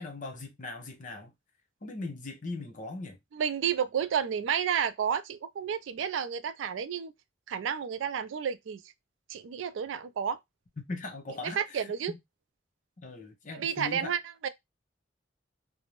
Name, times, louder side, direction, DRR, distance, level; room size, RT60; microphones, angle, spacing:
voice 1, 0.0-1.3 1.8-3.2 10.9-12.2 13.0-14.1, left 3 dB, 45° left, 0.7 m, -39 dB
voice 2, 3.3-7.1 7.5-8.8 9.3-10.4 11.4-12.1 13.5-14.5, right 8 dB, 90° right, 0.3 m, -31 dB
2.6 x 2.0 x 2.9 m
head